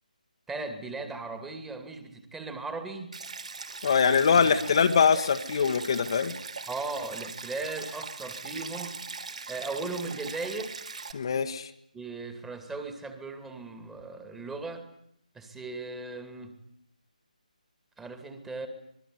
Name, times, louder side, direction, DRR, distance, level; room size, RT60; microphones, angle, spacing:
voice 1, 0.5-3.2 4.3-4.5 6.7-9.0 9.5-10.8 11.9-14.9 15.3-16.6 18.0-18.7, right 3 dB, 5° right, 7 dB, 2.5 m, -37 dB
Stream, 3.1-11.1, right 4 dB, 55° right, 3.6 m, -40 dB
voice 2, 3.8-6.3 11.1-11.7, left 6 dB, 40° left, 5 dB, 1.6 m, -23 dB
25.5 x 22.0 x 9.7 m, 0.74 s
figure-of-eight pair, 150°, 5 cm